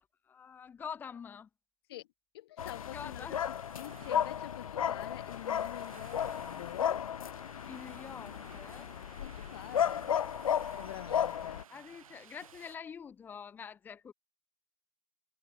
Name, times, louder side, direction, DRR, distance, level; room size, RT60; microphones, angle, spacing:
voice 1, 0.2-1.5 2.9-3.4 7.7-8.9 11.7-14.1, left 7 dB, 10° left, 2.6 m, -46 dB
voice 2, 2.3-3.4 3.7-7.1 9.2-10.1 10.7-11.6, left 15 dB, 45° left, 3.9 m, -47 dB
sound 1, 2.6-11.6, left 9 dB, 90° left, 1.1 m, -34 dB
sound 2, 2.6-12.8, right 8 dB, 85° right, 3.9 m, -57 dB
hypercardioid pair, 160°, 17 cm